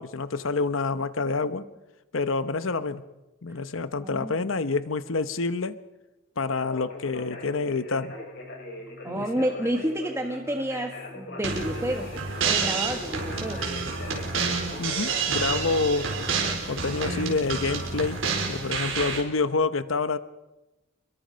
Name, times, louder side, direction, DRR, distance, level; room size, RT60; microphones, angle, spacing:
voice 1, 0.0-1.7 2.1-3.0 3.4-5.8 6.4-8.2 9.1-9.3 14.8-16.1 16.7-20.2, left 4 dB, 80° left, 13 dB, 0.9 m, -27 dB
voice 2, 4.0-4.3 9.0-12.1 12.4-13.6, right 1 dB, 15° right, 3 dB, 1.5 m, -30 dB
Conversation, 6.5-17.0, left 1 dB, 60° left, 7.6 m, -40 dB
sound 1, 11.4-19.2, right 5 dB, 75° right, 4.6 m, -29 dB
29.5 x 22.0 x 5.2 m, 1.0 s
head